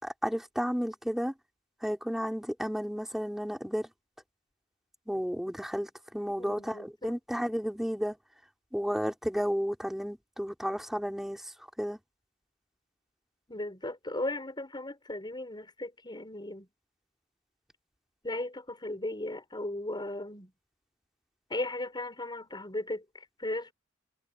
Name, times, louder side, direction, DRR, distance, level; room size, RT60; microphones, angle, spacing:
voice 1, 0.0-1.3 1.8-3.9 5.1-8.2 8.7-12.0, equal, ahead, 4.9 m, -32 dB
voice 2, 6.4-7.2 13.5-16.7 18.2-20.5 21.5-23.7, left 1 dB, 20° left, 4.5 m, -36 dB
head